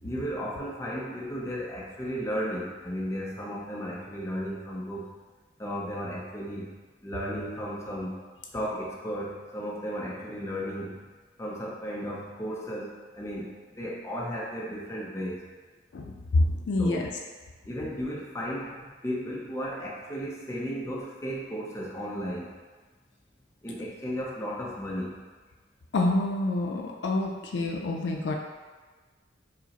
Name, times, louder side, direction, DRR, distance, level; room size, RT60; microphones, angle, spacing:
voice 1, 0.0-5.1 5.6-6.7 7.0-8.2 8.5-11.0 11.4-13.5 13.8-15.4 16.8-17.1 17.7-22.6 23.6-25.2, equal, 15° left, -4 dB, 0.6 m, -34 dB
voice 2, 15.9-17.1 25.9-28.3, left 2 dB, 75° left, 1 dB, 0.4 m, -27 dB
4.8 x 2.1 x 2.9 m, 1.4 s
head